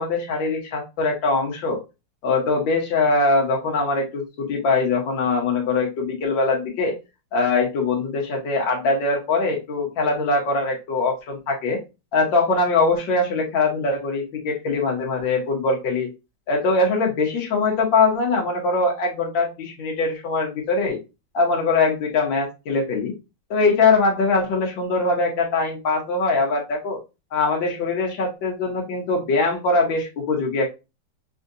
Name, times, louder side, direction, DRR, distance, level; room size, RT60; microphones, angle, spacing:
voice 1, 0.0-1.8 2.2-6.9 7.3-11.8 12.1-16.1 16.5-21.0 21.3-23.1 23.5-27.0 27.3-30.7, left 3 dB, 90° left, 0 dB, 1.8 m, -22 dB
5.6 x 2.6 x 2.6 m, 0.26 s
omnidirectional pair, 2.0 m